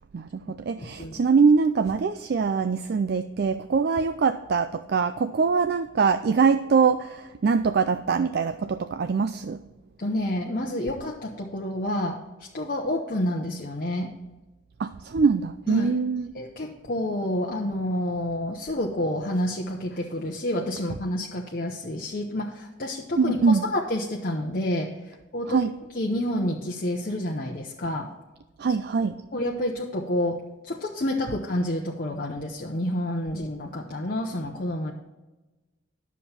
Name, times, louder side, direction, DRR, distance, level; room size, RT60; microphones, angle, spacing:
voice 1, 0.1-9.6 14.8-16.3 23.2-23.6 25.5-25.7 28.6-29.1, right 5 dB, 55° right, 10 dB, 0.4 m, -23 dB
voice 2, 0.8-1.2 10.0-14.1 15.7-15.9 16.3-25.6 25.9-28.1 29.3-34.9, left 1 dB, 50° left, 0 dB, 0.8 m, -29 dB
10.5 x 7.2 x 4.3 m, 1.1 s
head